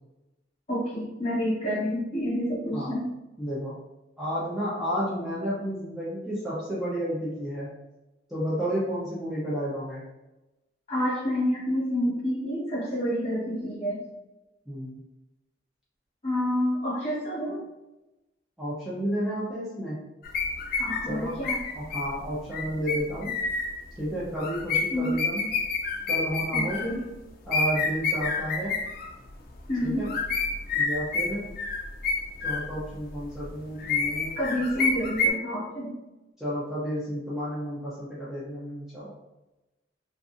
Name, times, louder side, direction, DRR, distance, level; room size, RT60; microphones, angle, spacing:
voice 1, 0.7-3.1 10.9-14.0 16.2-17.6 20.7-21.6 24.9-25.1 26.5-27.1 29.7-30.1 34.4-35.9, equal, 35° left, -7 dB, 1.2 m, -28 dB
voice 2, 3.4-3.7 4.2-7.7 8.3-10.0 14.7-15.0 18.6-20.0 21.1-21.4 21.8-23.3 24.0-25.4 26.1-26.8 27.4-28.7 29.8-30.1 30.7-31.4 32.4-34.5 36.4-39.1, equal, ahead, -9 dB, 0.5 m, -31 dB
sound 1, 20.2-23.7 24.4-26.9 27.5-29.1 29.9-33.0 33.3-35.3, left 3 dB, 50° left, 0.4 m, -28 dB
2.6 x 2.5 x 2.4 m, 1.0 s
head